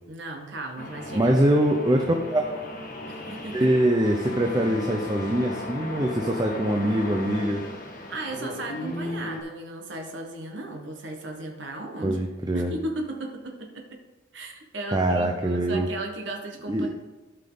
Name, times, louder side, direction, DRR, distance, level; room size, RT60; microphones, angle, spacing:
voice 1, 0.1-1.3 1.9-2.0 3.1-3.7 7.9-12.2 12.5-14.0 14.3-16.9, right 2 dB, 70° right, 2 dB, 1.4 m, -36 dB
sound 1, 0.8-9.4, left 1 dB, 45° left, 1.5 m, -36 dB
voice 2, 1.1-2.5 3.5-7.6 12.0-12.7 14.9-15.9 16.7-16.9, right 1 dB, 20° right, 2 dB, 0.6 m, -23 dB
13.0 x 5.6 x 3.9 m, 1.2 s
head